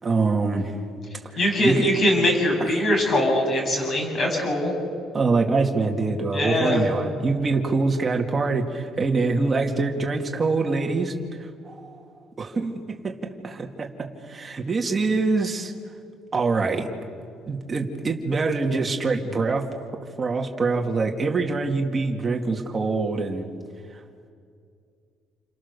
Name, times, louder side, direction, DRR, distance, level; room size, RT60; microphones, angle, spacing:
voice 1, 0.0-0.7 1.3-1.9 2.6-2.7 5.1-11.1 11.7-12.0 12.4-13.2 13.4-13.9 14.3-15.7 16.3-16.9 17.5-19.7 20.2-23.5, right 3 dB, 20° right, 2 dB, 2.4 m, -24 dB
voice 2, 1.4-4.7 6.3-6.8, left 1 dB, 35° left, 1 dB, 7.3 m, -22 dB
29.5 x 29.0 x 6.9 m, 2.3 s
cardioid pair, 175°, 0 cm